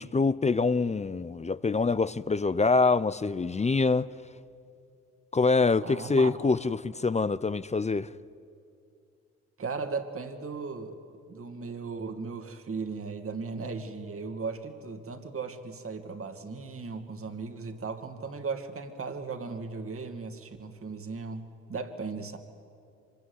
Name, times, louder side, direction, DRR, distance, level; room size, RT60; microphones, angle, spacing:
voice 1, 0.0-4.1 5.3-8.1, left 4 dB, 25° left, 0.7 m, -25 dB
voice 2, 5.8-6.3 9.6-11.0 11.3-21.4 21.7-22.4, right 4 dB, 50° right, 2.5 m, -37 dB
25.0 x 21.5 x 9.8 m
supercardioid pair, 60°, 29 cm